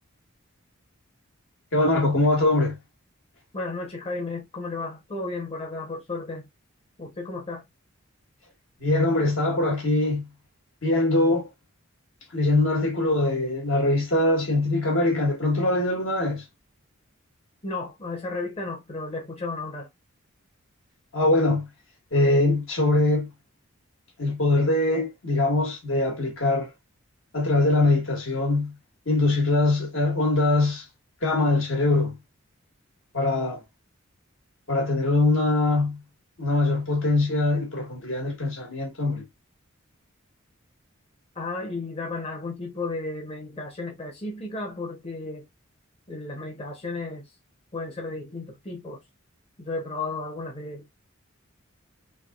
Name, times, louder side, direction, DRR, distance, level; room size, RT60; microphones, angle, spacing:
voice 1, 1.7-2.8 8.8-10.3 10.8-11.5 12.3-16.4 21.1-21.7 22.1-23.3 24.2-26.7 27.3-28.7 29.1-30.8 31.2-32.2 33.1-33.6 34.7-36.0 36.4-39.3, left 2 dB, 65° left, 1.5 m, -22 dB
voice 2, 3.5-6.5 7.0-7.6 17.6-19.9 41.3-45.5 46.1-47.4 47.7-49.0 49.6-50.9, left 3 dB, 30° left, 0.9 m, -33 dB
3.4 x 2.9 x 2.4 m
head